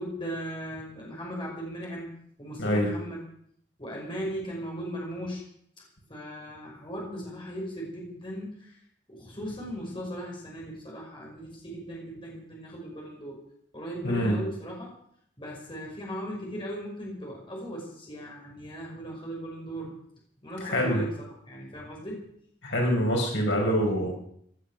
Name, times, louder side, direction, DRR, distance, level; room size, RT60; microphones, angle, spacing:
voice 1, 0.0-3.2 3.8-5.4 5.8-5.9 6.1-8.8 9.1-13.4 13.7-14.9 15.4-19.9 20.4-22.3, equal, 25° left, -2 dB, 5.5 m, -37 dB
voice 2, 14.0-14.4 20.6-21.0 22.6-24.1, equal, 75° left, 0 dB, 4.9 m, -25 dB
17.0 x 11.5 x 6.5 m, 0.68 s
head